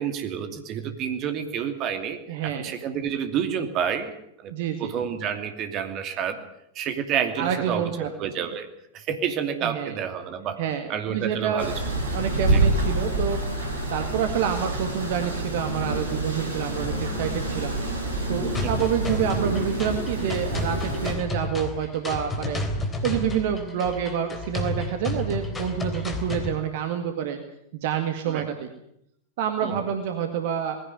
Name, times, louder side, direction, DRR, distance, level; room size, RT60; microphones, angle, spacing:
voice 1, 0.0-4.5 4.8-6.4 6.7-8.7 8.9-10.6 10.9-11.7 12.5-12.6 18.6-18.7 28.3-28.5 29.6-29.7, right 8 dB, 35° right, 7 dB, 2.7 m, -29 dB
voice 2, 2.3-2.7 4.5-4.9 7.4-8.1 9.6-9.9 10.6-11.7 12.1-13.4 13.9-17.8 18.3-22.6 23.0-27.4 27.7-28.7 29.4-30.8, right 8 dB, 50° right, 7 dB, 1.9 m, -28 dB
sound 1, 11.6-21.1, right 2 dB, 70° right, 5.8 m, -27 dB
sound 2, 18.5-26.5, left 2 dB, 15° left, 3.5 m, -31 dB
20.0 x 16.5 x 9.5 m, 0.76 s
figure-of-eight pair, 90°, 0 cm